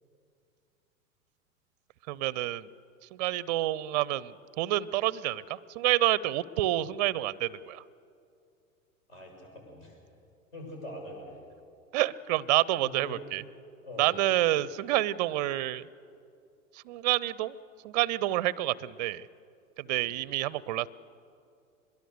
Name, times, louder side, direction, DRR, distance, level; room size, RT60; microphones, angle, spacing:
voice 1, 2.1-2.7 3.1-7.8 11.9-13.4 14.0-15.9 16.7-17.6 17.8-19.3 19.8-20.9, right 15 dB, 30° right, 22 dB, 0.5 m, -28 dB
voice 2, 9.1-10.0 10.5-11.4 12.8-13.2 13.8-14.2 19.8-20.1, left 1 dB, 65° left, 1 dB, 7.3 m, -44 dB
23.5 x 21.5 x 6.8 m, 2.5 s
figure-of-eight pair, 95°, 42 cm